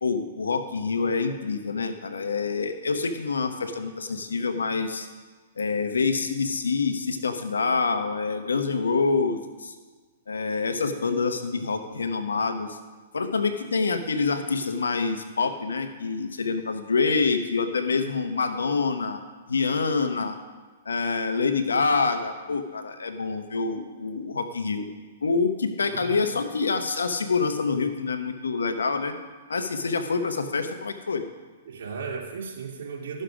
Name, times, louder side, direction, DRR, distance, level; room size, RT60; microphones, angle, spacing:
voice 1, 0.0-5.1 5.6-9.7 10.3-12.8 13.1-19.2 19.5-20.4 20.8-24.9 25.2-29.1 29.5-31.2, left 4 dB, 90° left, 8 dB, 1.1 m, -26 dB
voice 2, 25.8-26.4 31.7-33.2, right 5 dB, 65° right, -1 dB, 2.5 m, -36 dB
13.0 x 6.6 x 5.0 m, 1.4 s
hypercardioid pair, 125°, 0 cm